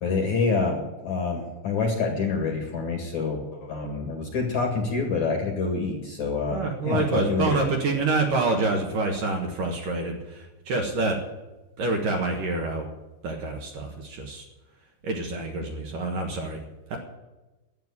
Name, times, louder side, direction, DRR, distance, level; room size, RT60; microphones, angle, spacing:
voice 1, 0.0-7.6, left 4 dB, 50° left, 2 dB, 2.7 m, -27 dB
voice 2, 6.5-11.2 11.8-12.9 13.2-14.4 15.0-16.6 16.9-17.0, right 3 dB, 60° right, 1 dB, 2.6 m, -27 dB
12.0 x 9.3 x 9.8 m, 1.1 s
omnidirectional pair, 5.4 m